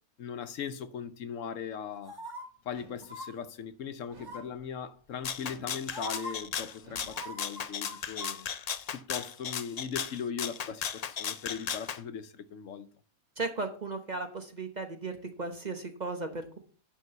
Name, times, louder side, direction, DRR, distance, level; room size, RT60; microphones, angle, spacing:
voice 1, 0.2-2.2 2.6-8.5 8.9-12.9, left 7 dB, 70° left, 1.0 m, -39 dB
sound 1, 2.1-2.4 3.0-3.3 4.2-4.6 5.5-5.6 5.9-6.3 7.1-8.4 8.7-8.8, right 1 dB, 15° right, 2.8 m, -41 dB
sound 2, 2.7-3.2 4.1-4.6 5.4-5.9 6.8-7.3, right 2 dB, 75° right, 2.5 m, -55 dB
Rattle (instrument), 5.2-12.0, left 7 dB, 90° left, 0.3 m, -36 dB
voice 2, 13.4-16.6, right 3 dB, 35° right, 1.0 m, -36 dB
10.5 x 3.8 x 6.7 m
omnidirectional pair, 1.4 m